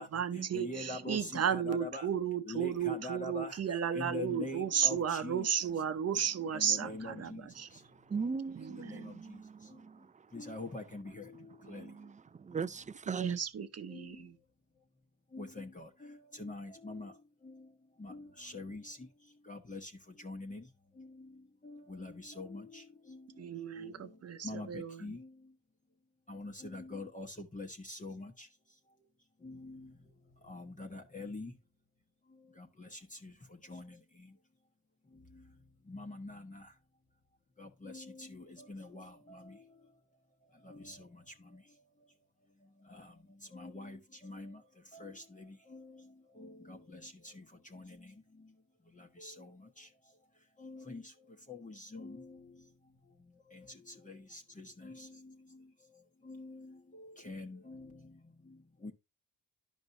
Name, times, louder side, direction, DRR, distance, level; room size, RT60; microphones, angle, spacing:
voice 1, 0.0-7.7 8.6-9.2 13.1-14.4 23.4-25.2, right 8 dB, 40° right, 1.0 m, -34 dB
voice 2, 0.5-2.1 2.4-5.5 6.5-7.5 8.3-9.4 10.3-11.9 13.9-14.2 15.3-17.1 17.4-17.6 18.0-19.1 19.5-19.9 20.2-20.6 21.0-21.3 21.6-23.2 23.8-23.9 24.4-25.3 26.3-28.5 29.4-29.9 30.4-31.5 32.6-34.3 35.9-36.7 37.6-39.6 40.6-41.2 41.5-41.6 42.9-43.1 43.5-44.6 44.9-46.0 46.4-47.4 47.7-48.1 49.0-49.9 50.6-51.1 51.5-52.5 53.5-55.3 56.2-58.0 58.8-58.9, left 2 dB, 20° left, 1.3 m, -45 dB
voice 3, 7.7-10.5 11.6-13.4, right 5 dB, 20° right, 0.5 m, -40 dB
11.0 x 5.3 x 2.7 m
supercardioid pair, 65°, 37 cm